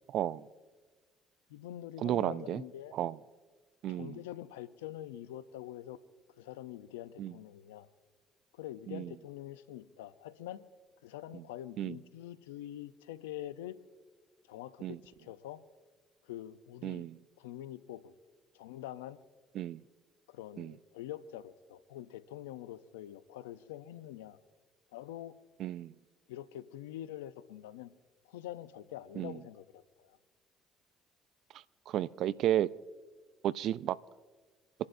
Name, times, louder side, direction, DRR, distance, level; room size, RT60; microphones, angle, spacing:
voice 1, 0.1-0.4 2.0-2.6 2.9-3.1 3.8-4.2 7.2-7.3 8.9-9.1 11.3-11.4 11.8-12.0 14.8-15.0 16.8-17.2 19.6-19.8 20.6-20.7 25.6-25.9 29.2-29.4 31.9-32.7 33.4-34.0, right 12 dB, 65° right, 19 dB, 0.4 m, -32 dB
voice 2, 1.5-3.0 3.9-6.0 6.4-7.9 8.5-10.6 11.0-13.8 14.5-15.6 16.2-17.1 17.4-18.1 18.5-19.2 20.3-24.4 24.9-25.4 26.3-27.9 28.3-30.2, left 13 dB, 90° left, 13 dB, 0.6 m, -45 dB
27.0 x 11.5 x 2.6 m, 1.4 s
hypercardioid pair, 60°, 0 cm